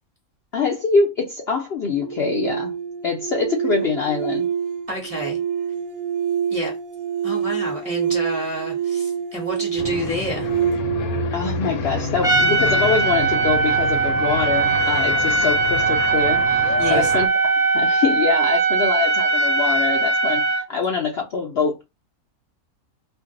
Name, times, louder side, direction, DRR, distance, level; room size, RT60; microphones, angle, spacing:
voice 1, 0.5-2.7 3.0-4.5 11.3-17.3 17.7-21.8, left 5 dB, 60° left, 0.7 m, -24 dB
sound 1, 1.9-13.0, right 8 dB, 70° right, 0.9 m, -27 dB
voice 2, 4.9-5.4 6.5-6.7 7.2-10.5 16.8-17.1, equal, 30° right, 0.9 m, -29 dB
sound 2, 9.8-17.3, left 4 dB, 80° left, 1.0 m, -29 dB
Trumpet, 12.2-20.7, right 3 dB, 5° right, 0.4 m, -20 dB
2.5 x 2.2 x 3.6 m
omnidirectional pair, 1.5 m